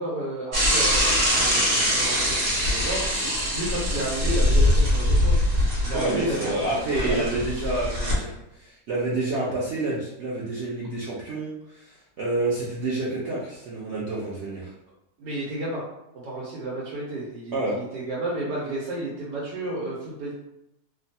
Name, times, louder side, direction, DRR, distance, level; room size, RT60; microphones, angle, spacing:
voice 1, 0.0-3.2 3.5-5.4 5.8-7.2 15.2-15.8 16.2-20.3, right 1 dB, 90° right, -6 dB, 1.3 m, -32 dB
Bicycle / Mechanisms, 0.5-8.1, equal, 50° right, 1.0 m, -23 dB
voice 2, 5.9-14.7 17.5-17.8, right 2 dB, 65° right, -6 dB, 0.6 m, -28 dB
3.1 x 2.1 x 2.7 m, 0.87 s
omnidirectional pair, 1.7 m